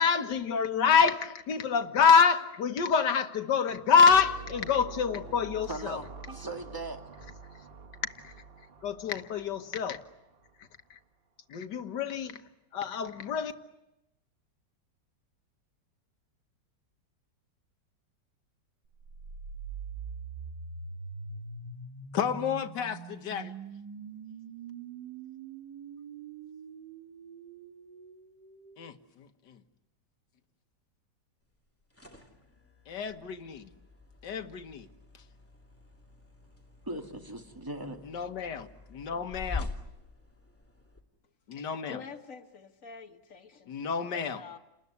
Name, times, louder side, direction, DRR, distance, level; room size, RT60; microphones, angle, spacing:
voice 1, 0.0-6.0 8.2-8.3 8.8-10.0 11.5-12.4 12.7-13.5 22.1-23.5 28.8-28.9 32.9-33.7 34.2-34.9 38.1-39.7 41.5-42.0 43.7-44.4, left 6 dB, 75° left, 2.0 m, -27 dB
sound 1, 4.1-10.5, right 4 dB, 35° right, 1.5 m, -47 dB
voice 2, 5.7-7.0 36.8-38.0, right 1 dB, 10° right, 2.3 m, -39 dB
sound 2, 18.9-28.9, right 5 dB, 75° right, 2.2 m, -43 dB
sound 3, 31.6-41.0, left 4 dB, 5° left, 2.6 m, -45 dB
voice 3, 41.5-43.7 44.0-44.6, left 5 dB, 50° left, 2.1 m, -47 dB
29.5 x 20.5 x 9.6 m
omnidirectional pair, 1.9 m